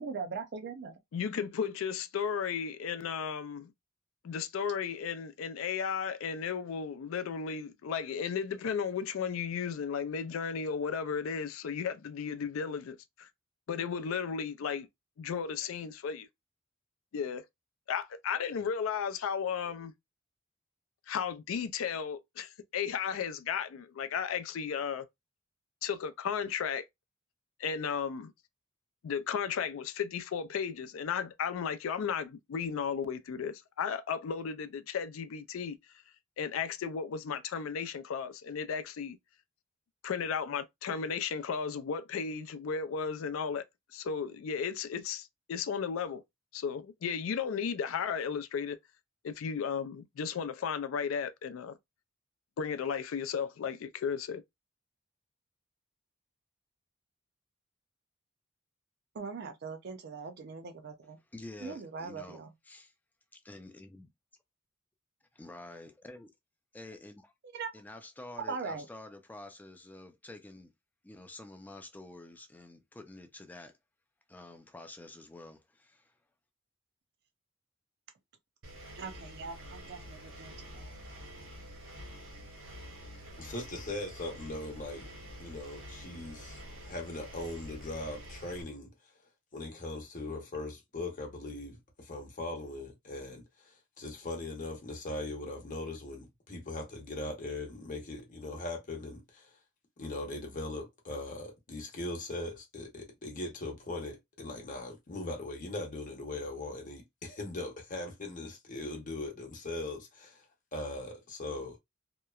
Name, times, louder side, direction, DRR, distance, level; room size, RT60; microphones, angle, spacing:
voice 1, 0.0-0.9 59.1-61.2 61.6-62.5 67.5-67.7 68.4-68.9 79.0-80.9, right 5 dB, 55° right, 0.5 m, -40 dB
voice 2, 1.1-3.7 4.2-13.3 13.7-14.9 15.2-16.3 17.1-17.4 17.9-19.9 21.1-25.1 25.8-26.9 27.6-28.3 29.0-35.8 36.4-39.2 40.0-43.6 43.9-46.2 46.5-48.8 49.2-51.8 52.6-54.4, left 6 dB, 80° left, 0.4 m, -34 dB
voice 3, 61.3-62.9 63.3-64.1 65.3-66.3 66.7-67.3 67.7-70.7 71.0-73.8 74.3-76.1, left 2 dB, 10° left, 0.4 m, -49 dB
Engine, 78.6-88.6, equal, 70° right, 1.0 m, -48 dB
voice 4, 83.4-85.1 85.4-88.9 89.5-99.5 100.0-110.4 110.7-111.8, left 2 dB, 40° left, 0.8 m, -40 dB
2.9 x 2.0 x 2.3 m
head